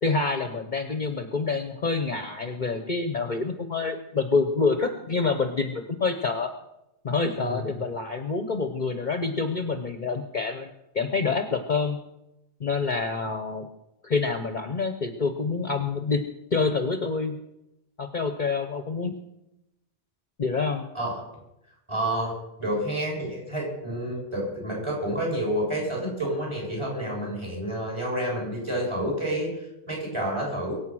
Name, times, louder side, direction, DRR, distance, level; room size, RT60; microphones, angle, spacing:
voice 1, 0.0-6.5 7.0-12.0 12.6-13.7 14.0-16.2 16.5-17.4 18.0-19.1 20.4-20.8, left 4 dB, 45° left, 7 dB, 1.1 m, -27 dB
voice 2, 7.3-7.8 20.9-21.2 21.9-30.7, right 1 dB, 25° right, -2 dB, 7.6 m, -29 dB
23.0 x 8.3 x 6.3 m, 0.88 s
omnidirectional pair, 1.2 m